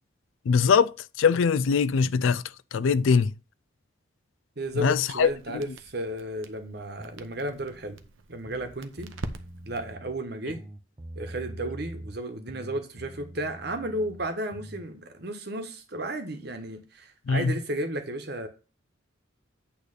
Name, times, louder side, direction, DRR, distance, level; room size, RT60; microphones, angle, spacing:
voice 1, 0.5-2.4 2.7-3.3 4.8-5.6 17.3-17.5, left 5 dB, 75° left, 0.4 m, -22 dB
voice 2, 4.6-8.0 8.3-9.1 9.7-10.6 11.2-18.5, right 1 dB, 50° right, 1.2 m, -33 dB
Crackle, 4.6-9.9, right 2 dB, 75° right, 0.8 m, -44 dB
sound 1, 7.0-8.0 8.4-10.2 10.5-12.2 12.5-14.9, right 1 dB, 25° right, 0.6 m, -44 dB
8.7 x 3.3 x 6.5 m
head